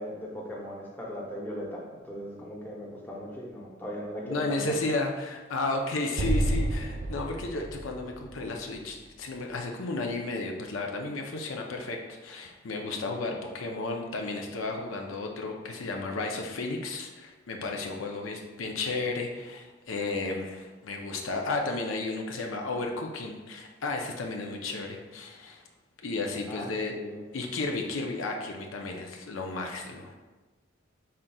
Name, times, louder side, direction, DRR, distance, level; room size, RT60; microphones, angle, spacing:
voice 1, 0.0-4.8 26.5-27.2, equal, 10° left, -3 dB, 0.8 m, -38 dB
voice 2, 4.3-25.6 26.0-27.0 27.3-30.1, left 3 dB, 85° left, 2 dB, 0.6 m, -33 dB
Explosion, 6.2-9.5, right 1 dB, 45° right, 0.4 m, -31 dB
5.6 x 3.7 x 2.3 m, 1.2 s
head